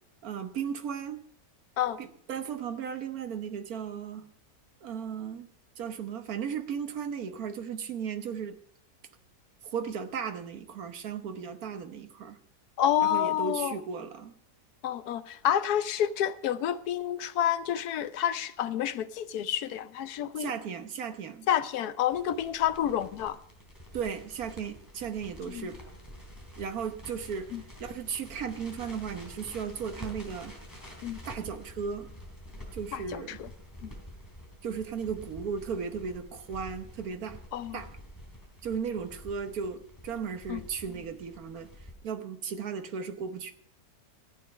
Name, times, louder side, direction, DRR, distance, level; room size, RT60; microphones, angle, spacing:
voice 1, 0.2-1.2 2.0-4.3 4.8-5.5 5.8-8.6 9.6-12.4 13.0-14.3 20.4-21.5 23.9-25.8 26.6-30.5 31.3-32.1 32.7-33.4 34.6-37.4 37.7-38.0 38.6-41.7 42.0-43.5, right 6 dB, 60° right, 1.4 m, -36 dB
voice 2, 12.8-13.7 14.8-20.5 21.5-23.4 25.5-25.7 27.5-27.6 31.0-31.2 32.9-33.5 33.8-33.9 37.5-37.8 40.5-40.6, left 10 dB, 70° left, 1.1 m, -29 dB
Crackle, 22.1-41.9, equal, 10° left, 3.2 m, -48 dB
13.5 x 9.2 x 5.2 m
omnidirectional pair, 1.8 m